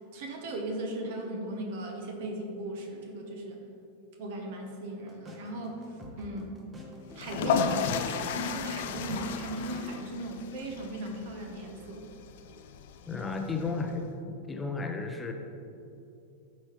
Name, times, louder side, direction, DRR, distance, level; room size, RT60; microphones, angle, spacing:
voice 1, 0.1-3.6 4.2-6.6 7.1-12.0, right 1 dB, 50° right, 2 dB, 1.2 m, -37 dB
sound 1, 5.0-10.0, left 1 dB, 15° right, 1.1 m, -48 dB
sound 2, 7.1-13.9, left 6 dB, 55° left, 0.4 m, -34 dB
voice 2, 13.1-15.3, left 4 dB, 15° left, 3 dB, 0.7 m, -33 dB
12.5 x 4.2 x 3.2 m, 2.7 s
figure-of-eight pair, 90°, 0 cm